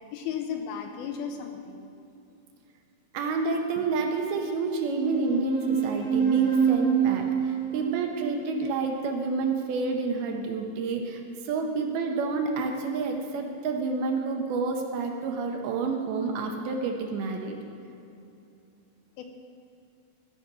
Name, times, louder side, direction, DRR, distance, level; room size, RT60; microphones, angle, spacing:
voice 1, 0.1-1.9 19.2-19.3, left 7 dB, 80° left, 5 dB, 2.5 m, -34 dB
voice 2, 3.1-17.6, right 4 dB, 80° right, 3 dB, 2.6 m, -29 dB
sound 1, 4.9-9.9, right 7 dB, 20° right, 2.5 m, -27 dB
14.0 x 5.6 x 6.2 m, 2.7 s
omnidirectional pair, 4.6 m